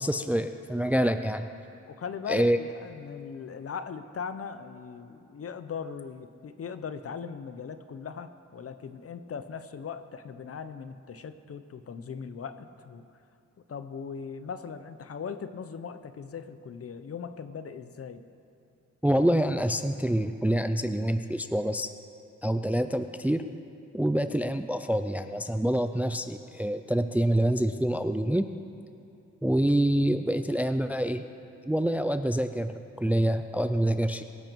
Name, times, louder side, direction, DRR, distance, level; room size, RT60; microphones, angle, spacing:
voice 1, 0.0-1.5 2.3-2.6 19.0-21.9 22.4-23.4 23.9-28.5 29.4-31.2 31.7-34.2, right 1 dB, 5° right, 9 dB, 0.4 m, -26 dB
voice 2, 1.8-13.0 13.7-18.2, left 6 dB, 50° left, 11 dB, 0.8 m, -39 dB
23.0 x 10.5 x 4.6 m, 2.7 s
wide cardioid pair, 145°, 29 cm